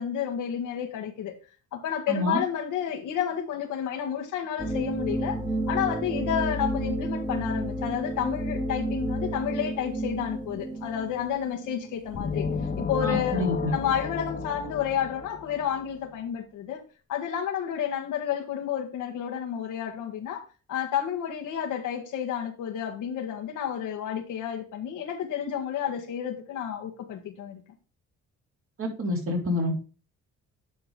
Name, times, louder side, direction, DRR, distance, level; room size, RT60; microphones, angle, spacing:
voice 1, 0.0-1.3 1.7-5.4 5.7-12.5 12.8-13.4 13.7-16.8 17.1-27.6, left 9 dB, 85° left, 1.7 m, -30 dB
voice 2, 2.1-2.5 13.0-13.7 28.8-29.7, left 1 dB, 45° right, 3.7 m, -27 dB
sound 1, 4.6-12.9, right 1 dB, 15° right, 2.0 m, -31 dB
sound 2, 12.1-15.9, left 6 dB, 30° left, 0.7 m, -33 dB
10.5 x 3.9 x 5.2 m
cardioid pair, 90°, 30 cm